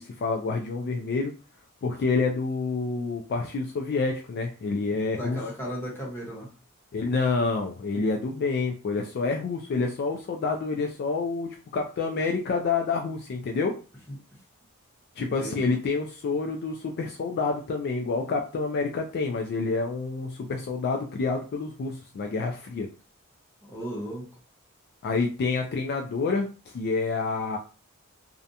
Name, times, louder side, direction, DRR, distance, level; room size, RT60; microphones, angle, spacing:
voice 1, 0.0-1.4 1.8-5.4 6.9-13.7 15.2-22.9 25.0-27.6, left 4 dB, 50° left, 3 dB, 0.3 m, -28 dB
voice 2, 5.2-6.5 15.2-15.7 23.7-24.3, equal, 10° left, -5 dB, 1.0 m, -35 dB
2.4 x 2.2 x 2.7 m, 0.35 s
head